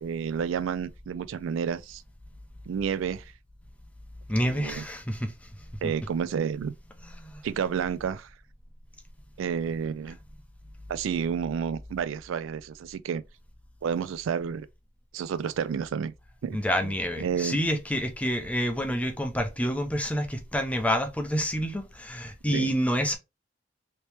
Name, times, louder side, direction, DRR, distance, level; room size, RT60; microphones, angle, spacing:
voice 1, 0.0-2.0 2.7-3.3 4.4-4.8 5.8-6.7 7.4-8.3 9.4-10.2 10.9-13.2 13.8-14.7 15.1-16.1 16.4-16.6 16.8-16.9 17.2-17.6 22.5-22.7, right 7 dB, 85° right, 0.3 m, -30 dB
voice 2, 4.3-5.3 5.8-5.9 7.2-7.4 16.5-23.2, equal, 5° left, 0.5 m, -28 dB
2.9 x 2.9 x 3.3 m
head